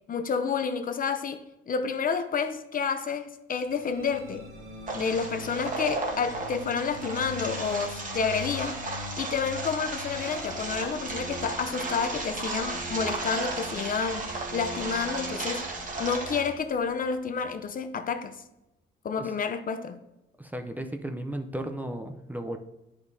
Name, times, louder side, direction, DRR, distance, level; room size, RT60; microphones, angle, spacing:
voice 1, 0.1-4.4 4.9-8.8 9.2-15.6 16.0-18.4 19.0-20.0, left 5 dB, 45° left, 0.6 m, -30 dB
sound 1, 3.6-18.0, equal, 55° right, 2.6 m, -43 dB
sound 2, 4.9-16.5, right 3 dB, 40° right, 1.6 m, -35 dB
voice 2, 20.4-22.6, right 1 dB, 10° right, 0.5 m, -35 dB
10.5 x 5.2 x 2.7 m
cardioid pair, 90°, 20 cm